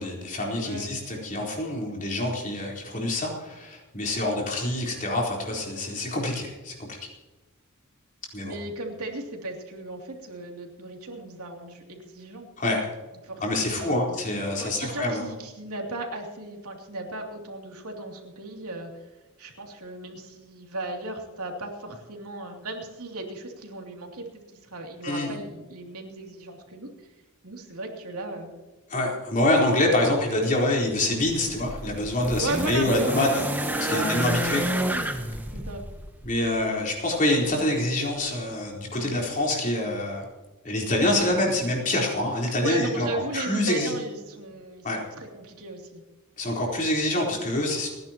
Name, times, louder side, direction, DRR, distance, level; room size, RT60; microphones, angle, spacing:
voice 1, 0.0-7.0 8.3-8.6 12.6-12.9 13.4-15.2 25.0-25.3 28.9-33.5 33.8-34.7 36.2-40.2 40.6-43.1 43.3-43.9 44.8-45.0 46.4-47.9, left 1 dB, 35° left, -2 dB, 4.1 m, -26 dB
voice 2, 0.6-0.9 8.4-12.5 13.2-14.1 14.6-18.9 19.4-26.9 27.4-28.5 30.0-30.1 32.4-33.3 33.7-35.1 35.5-35.8 42.6-46.0 47.3-47.4, right 2 dB, 80° right, 1 dB, 2.9 m, -36 dB
sound 1, 31.2-36.4 37.5-37.6, right 1 dB, 10° right, 1.2 m, -30 dB
29.5 x 10.5 x 3.0 m, 1.2 s
head